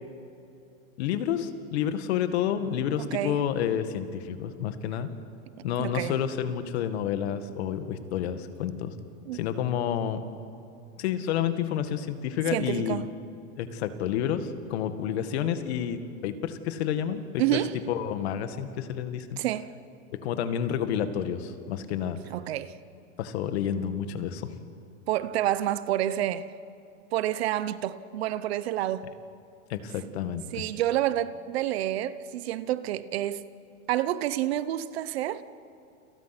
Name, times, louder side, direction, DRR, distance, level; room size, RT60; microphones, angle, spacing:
voice 1, 1.0-5.1 5.6-8.9 9.3-10.2 11.0-13.0 13.6-17.2 17.9-19.4 20.2-22.2 23.2-24.5 29.7-30.6, left 9 dB, 50° left, 2.0 m, -29 dB
voice 2, 3.0-3.4 5.8-6.1 9.3-9.4 12.5-13.1 17.4-17.8 19.4-19.7 22.3-22.7 25.1-26.5 27.1-29.1 30.5-33.4 33.9-35.4, right 13 dB, 50° right, 1.0 m, -28 dB
29.5 x 27.5 x 6.1 m
supercardioid pair, 160°, 41 cm